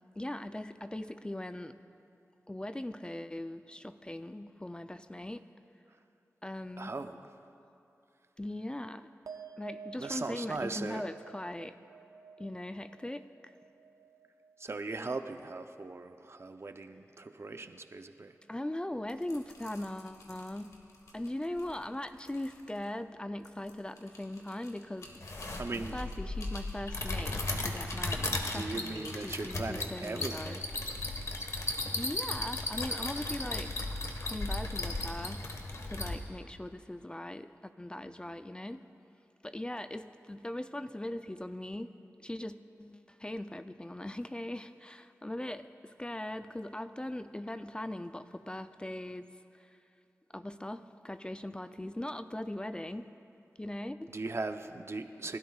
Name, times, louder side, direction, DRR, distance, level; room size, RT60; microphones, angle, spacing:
voice 1, 0.2-1.8 2.5-5.5 6.4-6.9 8.4-9.1 9.6-11.8 12.4-13.5 18.5-20.8 21.1-25.1 25.7-30.6 31.9-33.8 34.2-38.8 39.4-41.9 42.2-49.3 49.5-49.8 50.3-53.1 53.6-54.1, left 1 dB, 15° left, 10 dB, 0.4 m, -40 dB
voice 2, 6.8-7.2 10.0-11.1 14.6-18.4 25.6-26.0 28.4-30.7 54.1-55.4, right 3 dB, 50° right, 7 dB, 0.7 m, -39 dB
sound 1, 9.3-15.9 16.2-16.9, right 6 dB, 85° right, 0.7 m, -52 dB
sound 2, 18.9-31.7, left 2 dB, 80° left, 1.8 m, -55 dB
sound 3, 25.1-36.2, left 2 dB, 60° left, 1.4 m, -36 dB
30.0 x 12.5 x 2.4 m, 2.7 s
wide cardioid pair, 55°, 6 cm